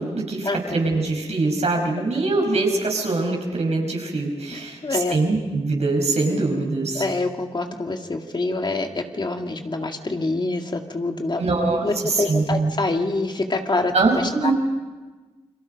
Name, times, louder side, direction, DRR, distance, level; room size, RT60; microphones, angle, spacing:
voice 1, 0.0-7.1 11.4-12.7 13.9-14.5, right 3 dB, 70° right, 1 dB, 5.4 m, -23 dB
voice 2, 4.5-5.2 6.9-11.4 11.8-13.9 14.4-14.5, left 2 dB, 40° left, 3 dB, 2.3 m, -26 dB
29.5 x 22.5 x 5.4 m, 1.3 s
cardioid pair, 55°, 11 cm